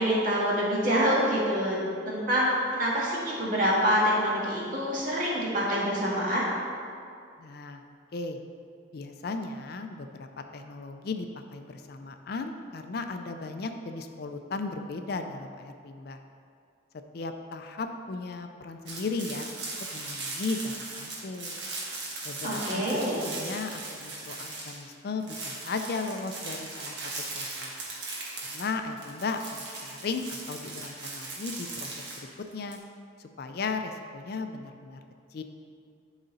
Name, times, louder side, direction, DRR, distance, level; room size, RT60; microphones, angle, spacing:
voice 1, 0.0-6.5 22.4-23.2, equal, 45° right, -6 dB, 1.8 m, -26 dB
voice 2, 7.4-7.8 8.1-8.4 8.9-11.3 11.5-16.2 17.1-21.6 22.2-27.7 28.5-32.3 32.5-32.8 33.2-35.0 35.3-35.4, left 3 dB, 50° left, 6 dB, 0.4 m, -36 dB
sound 1, 18.9-24.9 25.2-32.8, right 3 dB, 60° right, 1.5 m, -38 dB
11.5 x 4.0 x 4.0 m, 2.4 s
head